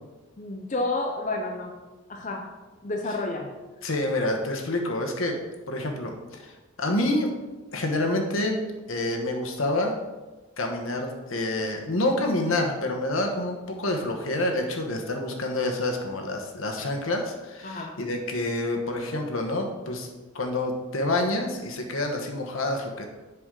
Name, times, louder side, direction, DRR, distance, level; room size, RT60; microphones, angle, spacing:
voice 1, 0.4-1.7 2.1-2.5 2.8-3.5 3.8-3.9 17.6-17.9, left 2 dB, 35° left, 2 dB, 0.6 m, -30 dB
voice 2, 3.8-5.3 5.7-6.5 6.8-7.3 7.7-8.6 8.9-9.9 10.6-20.1 20.3-23.1, left 1 dB, 75° left, 2 dB, 1.1 m, -27 dB
7.9 x 5.9 x 3.8 m, 1.2 s
head